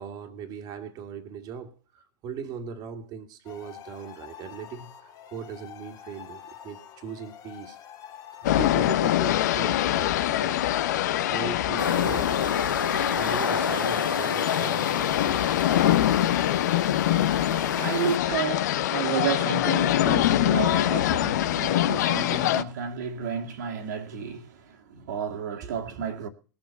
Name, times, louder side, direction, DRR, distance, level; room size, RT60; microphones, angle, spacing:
voice 1, 0.0-7.8 8.4-10.6 11.3-12.4 13.1-15.4 24.9-25.0 25.6-25.7, right 7 dB, 35° right, 2.0 m, -39 dB
sound 1, 3.4-8.5, left 10 dB, 35° left, 1.8 m, -46 dB
sound 2, 8.4-22.6, left 13 dB, 55° left, 0.9 m, -24 dB
sound 3, 11.8-18.2, left 4 dB, 85° left, 0.8 m, -31 dB
voice 2, 16.6-26.3, right 7 dB, 60° right, 2.0 m, -32 dB
20.0 x 7.4 x 6.8 m
figure-of-eight pair, 90°, 11 cm